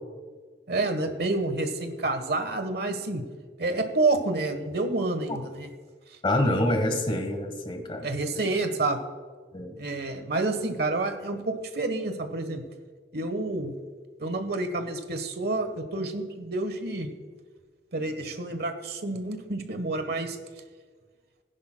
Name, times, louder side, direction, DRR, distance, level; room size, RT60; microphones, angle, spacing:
voice 1, 0.7-3.2 3.6-5.7 8.0-9.0 9.8-12.6 13.1-13.7 14.2-17.1 17.9-20.4, right 2 dB, 60° right, 7 dB, 1.2 m, -29 dB
voice 2, 6.2-8.1 8.3-8.5 9.5-9.8, left 1 dB, 30° left, 6 dB, 1.2 m, -26 dB
19.0 x 10.5 x 2.2 m, 1.5 s
head